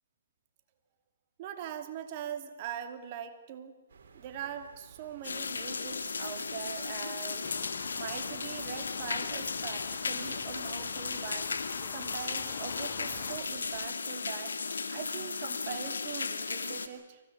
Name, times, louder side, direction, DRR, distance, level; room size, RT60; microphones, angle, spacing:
voice 1, 1.4-3.8 4.1-7.5 7.9-11.5 11.9-14.6 14.9-17.2, right 9 dB, 40° right, 7 dB, 2.4 m, -42 dB
sound 1, 3.9-13.9, right 5 dB, 60° right, 4.1 m, -57 dB
sound 2, 5.2-16.9, left 4 dB, 80° left, 2.0 m, -35 dB
sound 3, 7.4-13.4, left 12 dB, 45° left, 1.0 m, -47 dB
24.5 x 17.0 x 9.5 m, 1.2 s
hypercardioid pair, 135°, 0 cm